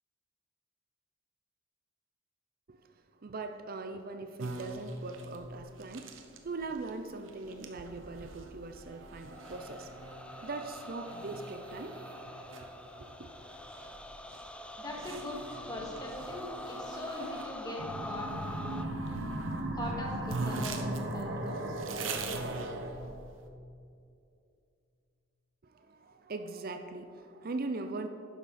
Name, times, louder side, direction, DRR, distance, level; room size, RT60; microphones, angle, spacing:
voice 1, 3.2-12.1 12.6-12.7 13.0-13.3 25.6-28.1, right 3 dB, 50° right, 7 dB, 0.6 m, -41 dB
sound 1, 4.4-17.6 18.2-19.7 19.9-20.0 20.3-23.4, right 3 dB, 90° right, 1.0 m, -43 dB
sound 2, 9.3-18.8, left 1 dB, 5° left, 0.5 m, -45 dB
voice 2, 14.8-15.4 15.7-18.3 19.1-19.3 19.7-20.9 21.1-21.7, left 1 dB, 20° left, -2 dB, 2.1 m, -41 dB
sound 3, 17.8-22.9, right 1 dB, 65° right, 1.3 m, -37 dB
12.0 x 10.0 x 4.3 m, 2.5 s
head